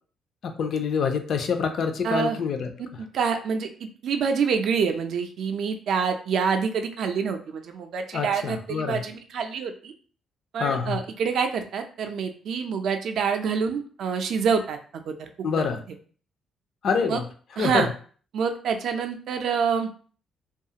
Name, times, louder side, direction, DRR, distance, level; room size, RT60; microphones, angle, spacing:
voice 1, 0.4-2.7 8.1-9.0 10.6-11.0 15.4-15.8 16.8-17.2 17.6-17.9, left 6 dB, 65° left, 6 dB, 0.4 m, -26 dB
voice 2, 2.0-2.4 3.0-3.7 4.0-9.9 10.5-15.3 17.1-17.2 17.6-17.9 18.3-19.9, right 6 dB, 70° right, 6 dB, 0.4 m, -26 dB
2.4 x 2.3 x 2.8 m, 0.43 s
cardioid pair, 90°, 0 cm